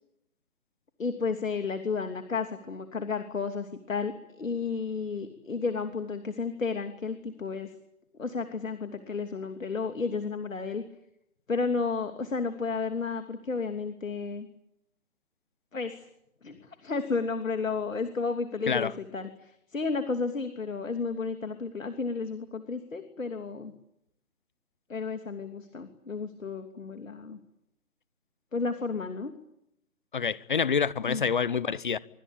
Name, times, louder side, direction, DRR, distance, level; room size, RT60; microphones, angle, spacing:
voice 1, 1.0-7.7 8.1-10.8 11.5-14.5 15.7-16.0 16.4-23.7 24.9-27.4 28.5-29.3 31.0-31.2, left 4 dB, 60° left, 3.0 m, -32 dB
voice 2, 30.1-32.0, left 6 dB, 35° left, 0.9 m, -27 dB
25.5 x 23.5 x 8.7 m
figure-of-eight pair, 150°, 43 cm